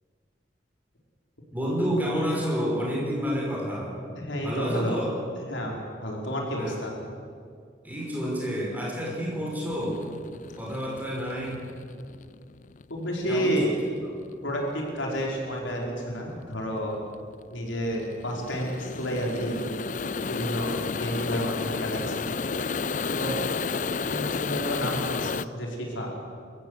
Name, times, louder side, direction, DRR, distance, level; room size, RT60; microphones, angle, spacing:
voice 1, 1.5-4.0 4.4-5.1 6.6-6.7 7.8-10.0 10.6-11.6 13.3-13.6, equal, 10° right, -4 dB, 5.6 m, -29 dB
voice 2, 4.1-5.0 5.5-6.9 12.9-13.7 14.4-17.0 17.5-19.6 20.3-20.7 21.0-22.3 23.1-23.4 24.0-26.1, equal, 85° left, -1 dB, 4.9 m, -30 dB
sound 1, 9.7-25.4, left 5 dB, 40° left, 0.4 m, -32 dB
24.5 x 15.0 x 8.1 m, 2.2 s
head